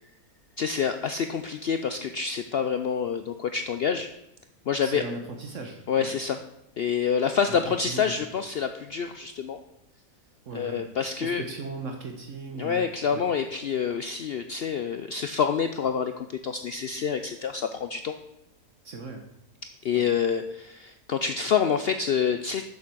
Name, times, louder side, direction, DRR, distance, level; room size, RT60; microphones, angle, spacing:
voice 1, 0.6-4.1 4.7-5.0 5.9-6.4 6.8-9.6 10.5-11.4 12.6-18.1 19.8-22.6, left 7 dB, 70° left, 8 dB, 0.5 m, -27 dB
voice 2, 4.8-6.1 7.5-8.2 10.5-10.8 11.2-13.2 18.8-19.3 19.9-20.1, right 3 dB, 60° right, 4 dB, 1.3 m, -38 dB
7.4 x 7.0 x 6.1 m, 0.83 s
omnidirectional pair, 1.6 m